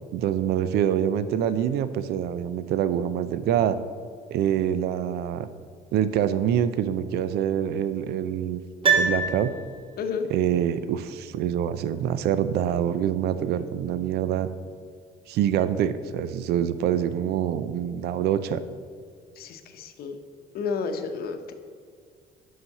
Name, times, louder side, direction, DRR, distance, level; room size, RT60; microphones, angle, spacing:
voice 1, 0.1-3.8 4.3-5.5 5.9-8.6 9.0-9.5 10.3-14.5 15.3-18.6, right 10 dB, 70° right, 13 dB, 0.5 m, -25 dB
Piano, 8.8-10.1 10.4-10.5, right 5 dB, 30° right, 1.4 m, -24 dB
voice 2, 10.0-10.3 19.4-20.2 20.5-21.5, left 5 dB, 65° left, 7 dB, 0.8 m, -31 dB
5.7 x 5.5 x 6.5 m, 2.1 s
cardioid pair, 110°, 17 cm